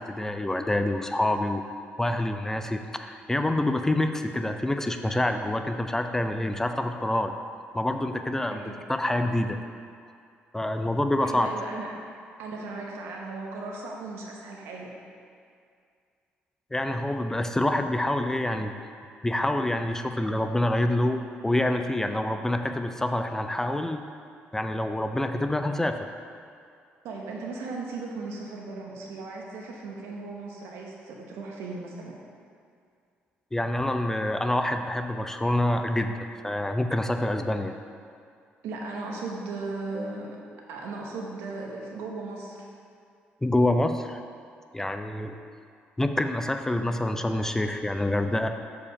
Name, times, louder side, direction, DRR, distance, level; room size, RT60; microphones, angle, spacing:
voice 1, 0.0-1.6 2.0-7.3 7.7-9.6 10.5-11.5 16.7-18.7 19.2-24.0 24.5-26.0 33.5-37.7 43.4-44.2 44.7-45.4 46.0-48.5, left 1 dB, 10° left, 7 dB, 0.4 m, -26 dB
voice 2, 8.5-8.8 11.2-12.1 12.4-14.9 27.0-32.2 38.6-40.4 40.7-42.7, right 3 dB, 85° right, -1 dB, 1.1 m, -37 dB
6.9 x 5.0 x 4.8 m, 2.3 s
cardioid pair, 85°, 4 cm